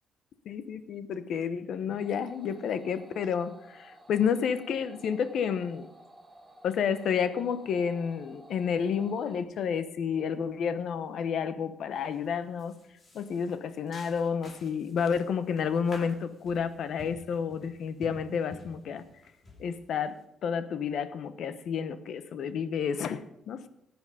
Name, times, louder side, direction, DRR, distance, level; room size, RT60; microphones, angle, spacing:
voice 1, 0.5-5.9 6.6-12.7 13.1-19.0 19.6-23.7, left 7 dB, 70° left, 12 dB, 1.0 m, -30 dB
sound 1, 2.0-9.4, right 1 dB, 15° right, 2.2 m, -54 dB
sound 2, 11.9-12.2 12.6-20.2, left 1 dB, 45° left, 4.2 m, -50 dB
15.5 x 9.2 x 5.0 m, 0.83 s
cardioid pair, 90°, 0 cm